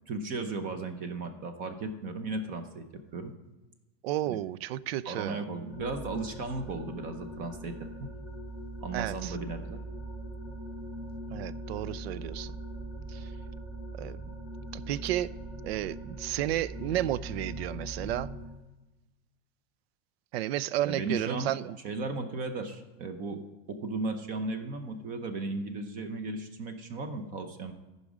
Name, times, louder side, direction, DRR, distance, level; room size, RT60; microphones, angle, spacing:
voice 1, 0.1-2.9 3.1-3.3 4.3-4.4 5.0-7.7 8.0-8.1 8.8-9.8 20.8-21.5 21.8-23.4 23.7-27.7, right 3 dB, 30° right, 0.7 m, -35 dB
voice 2, 4.0-5.4 8.9-9.4 11.3-12.6 13.1-13.3 14.0-14.2 14.7-15.3 15.6-18.3 20.3-21.8, right 13 dB, 85° right, 0.5 m, -32 dB
sound 1, 5.7-18.5, right 1 dB, 10° right, 2.4 m, -41 dB
14.0 x 5.3 x 4.9 m
supercardioid pair, 165°, 30 cm